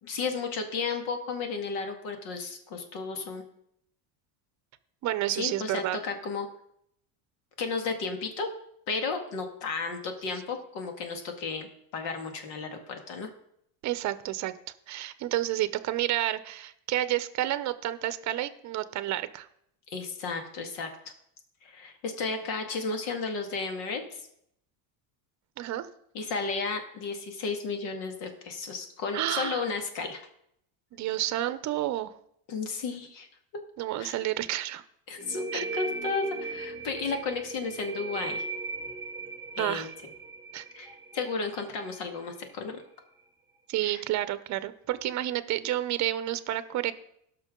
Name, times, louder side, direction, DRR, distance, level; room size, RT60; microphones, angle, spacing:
voice 1, 0.0-3.4 5.3-6.5 7.6-8.5 8.9-11.7 11.9-13.3 19.9-20.9 21.6-24.3 26.1-30.2 32.5-33.3 34.0-34.2 35.1-38.4 39.6-39.9 40.7-42.8 43.8-44.0, left 4 dB, 70° left, 5 dB, 2.1 m, -33 dB
voice 2, 5.0-6.0 13.8-14.5 14.9-19.5 25.6-25.9 29.1-29.7 30.9-32.1 33.8-34.8 35.5-35.6 39.6-39.9 40.5-40.6 43.7-46.9, right 14 dB, 40° right, 13 dB, 0.7 m, -30 dB
sound 1, 35.2-42.6, right 4 dB, 10° right, 1.3 m, -39 dB
17.5 x 6.0 x 3.8 m, 0.72 s
cardioid pair, 135°, 44 cm